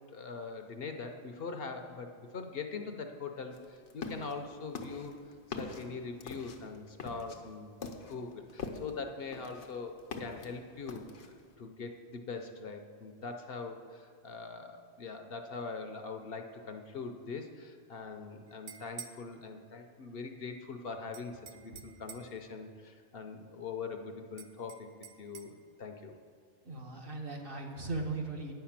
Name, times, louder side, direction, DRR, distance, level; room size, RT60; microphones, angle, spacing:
voice 1, 0.1-5.2 5.6-7.8 8.0-24.9 25.2-26.2, left 4 dB, 60° left, 5 dB, 0.8 m, -42 dB
sound 1, 3.5-4.3 4.7-9.0 9.3-10.5 10.9-11.4, left 4 dB, 90° left, 1.2 m, -42 dB
sound 2, 18.5-19.2 21.1-22.4 24.4-25.5, right 7 dB, 75° right, 0.9 m, -49 dB
voice 2, 26.6-28.5, right 3 dB, 55° right, 1 dB, 1.3 m, -38 dB
9.6 x 5.8 x 7.2 m, 2.1 s
omnidirectional pair, 1.2 m